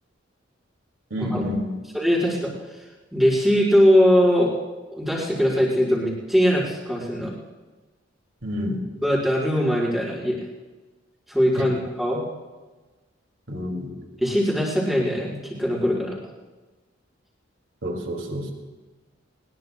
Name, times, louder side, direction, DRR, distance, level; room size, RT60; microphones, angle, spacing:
voice 1, 1.1-1.7 8.4-8.9 11.6-11.7 13.5-13.9 17.8-18.5, left 1 dB, 70° right, 2 dB, 2.6 m, -28 dB
voice 2, 1.9-2.5 3.1-4.5 4.9-7.3 9.0-10.4 11.3-12.2 14.2-16.2, equal, ahead, -6 dB, 4.7 m, -21 dB
22.5 x 21.0 x 2.3 m, 1.2 s
head